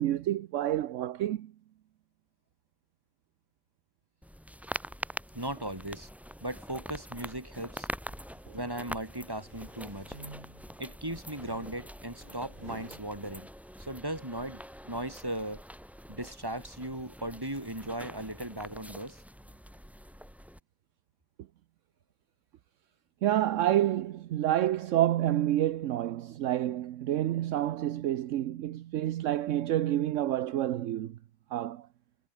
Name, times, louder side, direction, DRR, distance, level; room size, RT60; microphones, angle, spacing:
voice 1, 0.0-1.5 8.5-8.6 23.2-31.2 31.5-31.9, right 13 dB, 70° right, 1.0 m, -28 dB
sound 1, 4.2-20.6, equal, ahead, 3.8 m, -45 dB
voice 2, 5.3-6.1 6.4-7.9 8.5-10.2 10.8-13.5 13.8-15.6 16.1-19.2, right 1 dB, 15° right, 4.3 m, -37 dB
sound 2, 8.1-8.6 9.1-10.8 11.3-13.1, right 2 dB, 40° right, 3.2 m, -50 dB
omnidirectional pair, 1.4 m